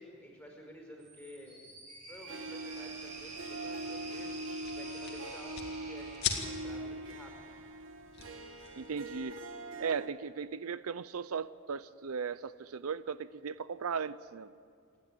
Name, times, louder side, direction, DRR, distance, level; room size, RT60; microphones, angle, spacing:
voice 1, 0.0-1.6 2.1-4.3 4.7-7.5, equal, 5° left, 0 dB, 5.2 m, -52 dB
sound 1, 1.0-7.2, right 2 dB, 35° right, 6.9 m, -48 dB
Harp, 2.2-10.1, right 2 dB, 65° right, 1.5 m, -42 dB
sound 2, 2.6-9.3, left 7 dB, 50° left, 2.2 m, -43 dB
voice 2, 8.7-9.4 9.8-14.5, right 6 dB, 80° right, 16 dB, 0.5 m, -37 dB
28.0 x 11.5 x 9.0 m, 2.2 s
head